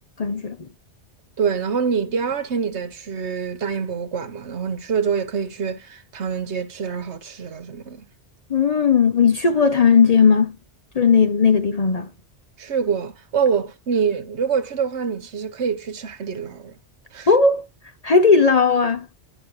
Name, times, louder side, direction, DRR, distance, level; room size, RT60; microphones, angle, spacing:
voice 1, 0.2-0.7 8.5-10.6 10.9-12.1 17.3-17.7 18.0-19.1, left 5 dB, 40° left, 0.6 m, -17 dB
voice 2, 1.4-8.1 12.6-16.7 17.1-17.3, right 6 dB, 70° right, 1.3 m, -25 dB
11.0 x 6.1 x 3.0 m
omnidirectional pair, 1.2 m